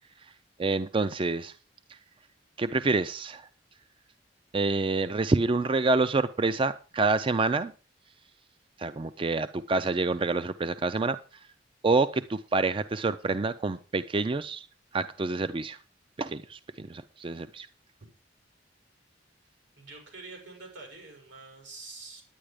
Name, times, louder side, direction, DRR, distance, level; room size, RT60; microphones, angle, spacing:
voice 1, 0.6-1.5 2.6-3.5 4.5-7.7 8.8-11.2 11.8-14.7 14.9-15.8 16.2-17.7, right 3 dB, 30° right, 12 dB, 0.4 m, -27 dB
voice 2, 19.8-22.2, right 3 dB, 90° right, 1 dB, 5.7 m, -46 dB
10.0 x 9.6 x 4.9 m, 0.35 s
head